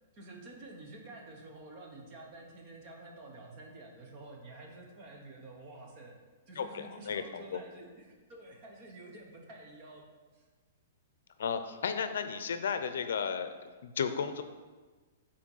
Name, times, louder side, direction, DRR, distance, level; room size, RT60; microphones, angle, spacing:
voice 1, 0.1-6.2 6.5-10.1 10.3-10.5, right 2 dB, 25° right, 0 dB, 1.1 m, -50 dB
voice 2, 6.6-7.6 11.4-13.5 13.8-14.4, left 6 dB, 70° left, 9 dB, 0.6 m, -34 dB
7.6 x 4.4 x 5.6 m, 1.4 s
hypercardioid pair, 175°, 0 cm